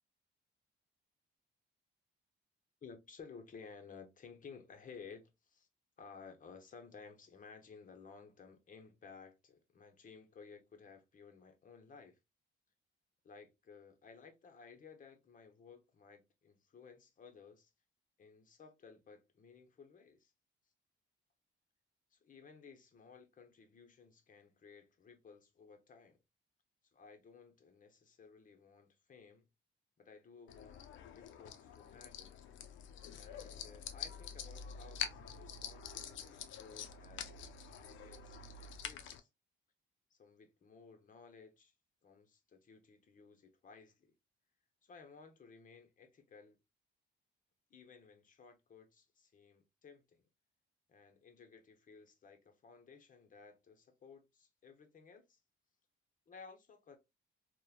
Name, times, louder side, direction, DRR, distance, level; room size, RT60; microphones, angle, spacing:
voice 1, 2.8-5.7 6.0-12.2 13.2-17.7 18.2-20.3 22.1-26.2 26.9-29.5 30.0-32.4 33.1-39.3 40.1-41.7 42.0-44.1 44.8-46.6 47.7-50.3 50.9-55.4 56.3-57.0, left 5 dB, 40° left, 0.8 m, -57 dB
sound 1, 30.5-39.2, left 7 dB, 75° left, 0.5 m, -46 dB
2.9 x 2.1 x 2.3 m
cardioid pair, 90°, 20 cm